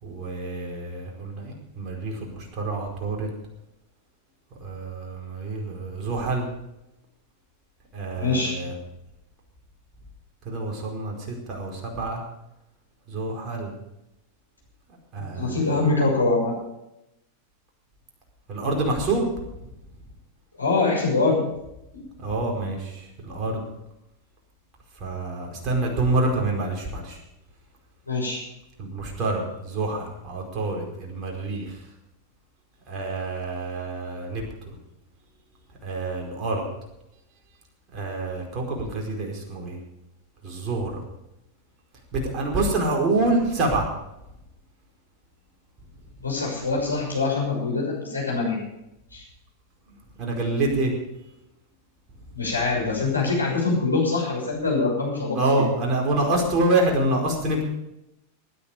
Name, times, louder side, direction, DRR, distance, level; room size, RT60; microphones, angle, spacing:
voice 1, 0.0-3.3 4.6-6.5 7.9-8.7 10.4-12.2 13.1-13.7 15.1-15.7 18.5-19.3 19.6-19.7 22.2-23.6 25.0-27.2 28.8-31.8 32.9-34.8 35.8-36.7 37.9-39.8 40.4-41.0 42.1-43.9 49.9-50.9 55.3-57.7, right 2 dB, 30° right, 0 dB, 4.9 m, -27 dB
voice 2, 8.1-8.6 15.2-16.6 20.6-21.4 21.9-22.0 28.1-28.4 46.2-48.6 49.1-49.2 52.3-55.6, left 3 dB, 80° left, -2 dB, 6.2 m, -24 dB
20.5 x 10.5 x 5.3 m, 0.88 s
figure-of-eight pair, 90°, 0 cm